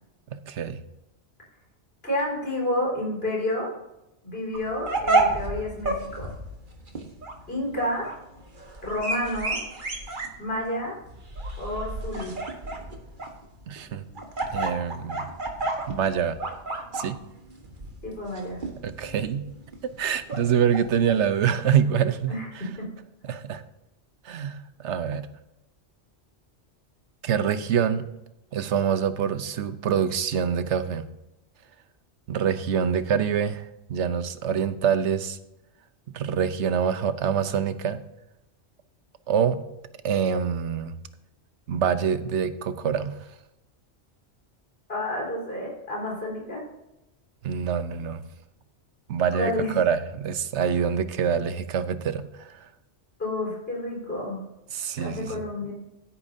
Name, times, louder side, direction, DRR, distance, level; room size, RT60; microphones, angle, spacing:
voice 1, 0.3-0.8 13.7-14.0 14.5-15.3 15.9-16.4 16.9-17.2 18.8-19.5 19.8-22.6 23.2-23.6 24.2-25.3 27.2-28.1 28.5-31.1 32.3-35.4 36.1-38.0 39.3-39.6 40.0-40.9 41.7-43.2 47.4-48.2 49.1-52.6 54.7-55.4, right 8 dB, 90° right, 12 dB, 1.1 m, -25 dB
voice 2, 2.0-3.7 4.2-6.3 7.5-8.1 8.8-9.6 10.4-10.9 11.6-12.3 18.0-18.6 22.3-22.5 22.8-22.9 44.9-46.6 49.3-49.7 53.2-54.4 55.0-55.7, left 1 dB, 60° left, -3 dB, 5.0 m, -30 dB
sound 1, 4.5-21.2, right 2 dB, 45° right, 1.6 m, -31 dB
15.5 x 8.6 x 2.7 m, 0.91 s
omnidirectional pair, 1.1 m